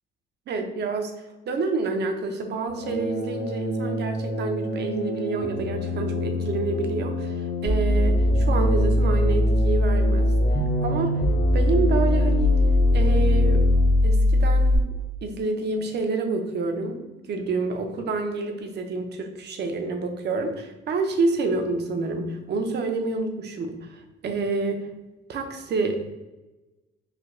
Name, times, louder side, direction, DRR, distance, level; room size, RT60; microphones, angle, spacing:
voice 1, 0.5-1.1 1.5-10.3 10.8-11.2 11.5-12.5 12.9-13.7 14.0-14.9 15.2-17.0 17.3-24.9 25.3-26.1, right 3 dB, 60° right, 4 dB, 0.6 m, -28 dB
sound 1, 2.7-14.0, left 1 dB, 55° left, 1.2 m, -30 dB
sound 2, 7.7-14.8, left 1 dB, 20° right, 0.6 m, -20 dB
3.3 x 2.2 x 3.6 m, 1.1 s
cardioid pair, 90°, 20 cm